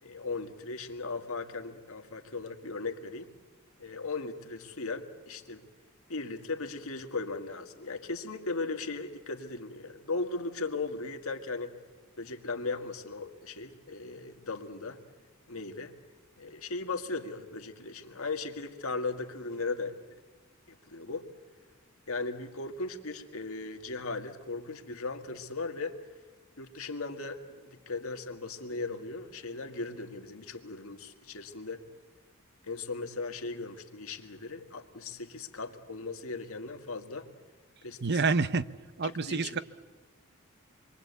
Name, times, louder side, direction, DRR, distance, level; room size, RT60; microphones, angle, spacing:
voice 1, 0.0-3.3 3.8-5.6 6.1-11.8 12.2-15.0 15.5-15.9 16.4-20.0 20.7-21.3 22.1-26.0 26.6-31.8 32.6-37.3 37.8-38.2 39.0-39.6, left 3 dB, 75° left, 5 dB, 1.9 m, -37 dB
voice 2, 38.0-38.7 39.0-39.6, right 4 dB, 50° right, 14 dB, 0.7 m, -27 dB
26.5 x 23.0 x 8.2 m, 1.3 s
head